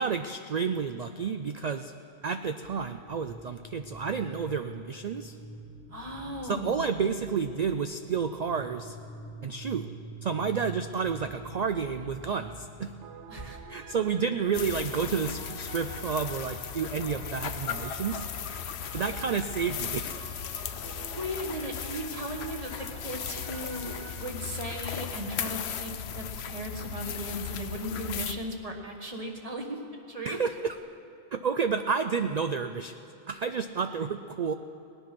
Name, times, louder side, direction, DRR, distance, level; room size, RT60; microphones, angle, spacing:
voice 1, 0.0-1.9 2.2-5.4 6.4-9.0 9.4-9.9 10.2-12.9 13.7-18.3 18.9-20.2 30.3-30.8 31.3-33.0 33.3-34.5, right 6 dB, 90° right, 8 dB, 0.3 m, -30 dB
sound 1, 2.6-14.9, right 1 dB, 55° right, 3.3 m, -47 dB
voice 2, 5.9-6.8 13.3-13.6 21.1-29.8 30.1-30.4, equal, 30° right, 2 dB, 1.4 m, -37 dB
sound 2, 13.0-24.3, right 8 dB, 70° right, 0.9 m, -48 dB
sound 3, 14.5-28.3, left 8 dB, 65° left, 0.9 m, -37 dB
18.0 x 10.0 x 6.0 m, 2.8 s
omnidirectional pair, 1.2 m